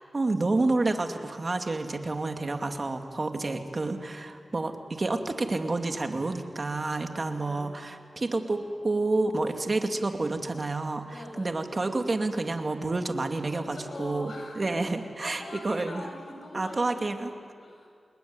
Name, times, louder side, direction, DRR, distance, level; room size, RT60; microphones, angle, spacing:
voice 1, 0.1-16.1 16.5-17.3, right 2 dB, 45° right, 5 dB, 2.5 m, -29 dB
voice 2, 7.3-7.8 11.1-11.6 13.5-14.7 15.2-17.9, left 1 dB, 70° left, 2 dB, 7.3 m, -43 dB
28.5 x 21.0 x 9.8 m, 2.2 s
cardioid pair, 65°, 0 cm